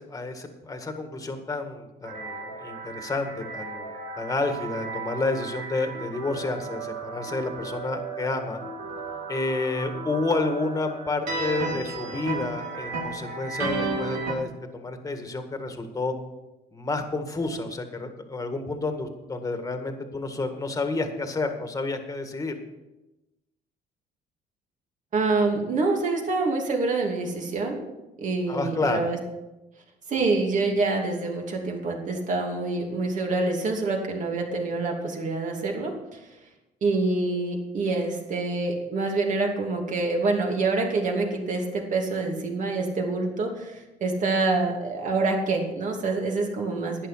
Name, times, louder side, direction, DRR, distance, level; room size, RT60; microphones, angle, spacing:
voice 1, 0.0-3.9 4.2-8.6 9.3-16.1 16.7-22.5 28.5-29.1, left 3 dB, 20° left, 6 dB, 1.8 m, -30 dB
sound 1, 2.0-14.3, right 3 dB, 85° right, 3.1 m, -34 dB
voice 2, 25.1-27.8 28.2-29.2 30.1-36.2 36.8-47.1, right 3 dB, 50° right, 1 dB, 2.8 m, -26 dB
11.5 x 9.9 x 5.7 m, 0.99 s
cardioid pair, 110°, 17 cm